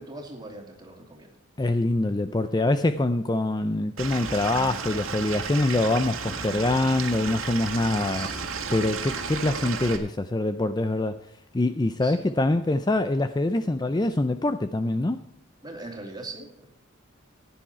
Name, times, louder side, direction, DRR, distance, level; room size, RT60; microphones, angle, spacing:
voice 1, 0.0-1.3 2.4-2.7 7.8-8.5 12.0-12.5 14.0-14.1 15.6-16.7, right 2 dB, 20° right, 1 dB, 2.6 m, -41 dB
voice 2, 1.6-8.3 8.7-11.2 11.5-15.2, left 2 dB, 20° left, 10 dB, 0.4 m, -24 dB
Stream / Liquid, 4.0-10.0, right 5 dB, 75° right, 2.0 m, -33 dB
15.0 x 9.9 x 4.4 m, 0.74 s
head